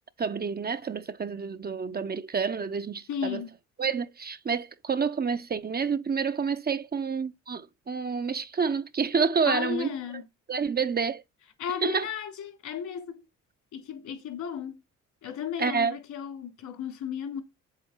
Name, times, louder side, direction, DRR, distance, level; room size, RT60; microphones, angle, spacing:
voice 1, 0.2-3.4 3.8-9.9 10.5-11.2 11.8-12.0 15.6-16.0, right 5 dB, 30° right, 0.7 m, -28 dB
voice 2, 3.1-3.5 9.5-10.2 11.6-13.2 13.7-14.8 15.2-17.4, left 8 dB, 80° left, 3.3 m, -34 dB
8.2 x 7.6 x 4.5 m
cardioid pair, 90°, 30 cm